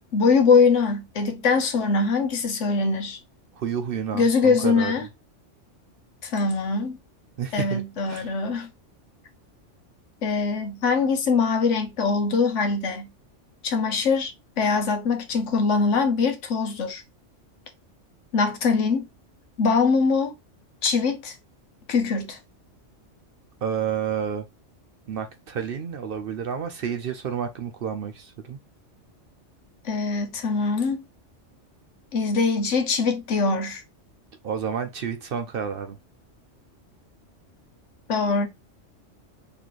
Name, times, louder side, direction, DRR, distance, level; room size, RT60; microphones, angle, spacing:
voice 1, 0.1-3.2 4.1-5.1 6.2-7.0 7.5-8.7 10.2-13.1 13.6-17.0 18.3-19.1 19.6-20.3 20.8-21.4 21.9-22.4 29.8-31.0 32.1-33.8 38.1-38.5, left 4 dB, 75° left, 1.2 m, -22 dB
voice 2, 3.6-4.9 7.4-7.8 8.1-8.3 23.6-24.4 25.1-28.6 34.4-36.0, right 7 dB, 60° right, 0.7 m, -30 dB
4.2 x 3.2 x 3.0 m
omnidirectional pair, 1.3 m